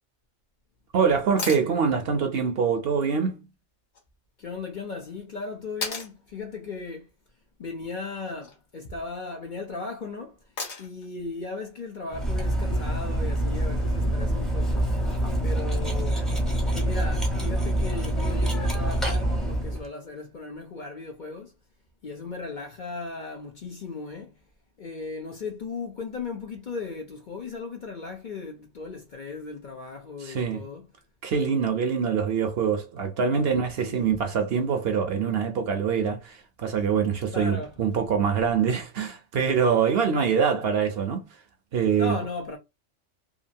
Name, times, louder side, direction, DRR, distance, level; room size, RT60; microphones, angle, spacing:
voice 1, 0.9-3.4 30.2-30.6 31.2-41.3 41.7-42.2, right 6 dB, 60° right, 0.8 m, -24 dB
sound 1, 1.4-1.7 3.9-4.0 5.8-6.1 8.1-8.6 10.6-11.1 13.2-13.3, left 3 dB, 65° left, 1.3 m, -34 dB
voice 2, 4.4-7.1 7.6-10.4 10.8-14.8 15.4-16.3 16.7-21.5 22.0-24.4 24.8-30.8 33.9-34.2 37.3-37.7 42.0-42.6, left 3 dB, 50° left, 0.7 m, -36 dB
Cutlery silverware, 12.1-19.9, right 1 dB, ahead, 0.6 m, -26 dB
2.8 x 2.5 x 2.6 m
omnidirectional pair, 1.3 m